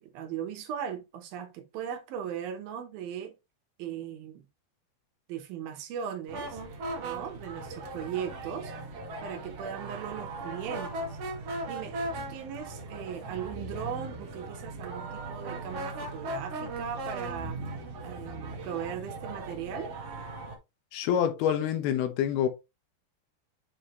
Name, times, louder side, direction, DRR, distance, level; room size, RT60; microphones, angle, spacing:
voice 1, 0.0-3.3 3.8-4.5 5.3-6.6 7.0-8.7 9.2-11.2 11.7-17.6 18.0-19.9, right 8 dB, 75° right, 2.7 m, -38 dB
sound 1, 6.3-20.6, right 2 dB, 55° right, 1.9 m, -38 dB
voice 2, 20.9-22.5, left 9 dB, 80° left, 2.8 m, -26 dB
7.3 x 4.9 x 2.9 m
omnidirectional pair, 4.5 m